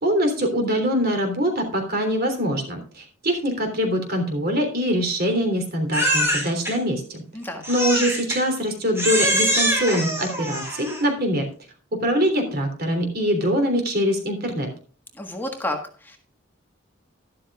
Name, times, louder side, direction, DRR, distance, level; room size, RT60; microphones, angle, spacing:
voice 1, 0.0-7.2 7.7-11.5 11.9-14.7, equal, 50° right, 5 dB, 3.3 m, -23 dB
Crying sobbing, 5.9-6.7 7.6-8.4 9.0-11.1, right 1 dB, 15° right, 4.6 m, -23 dB
voice 2, 7.3-7.6 15.2-16.2, left 1 dB, 10° left, 2 dB, 1.5 m, -31 dB
12.5 x 12.5 x 2.4 m, 0.40 s
head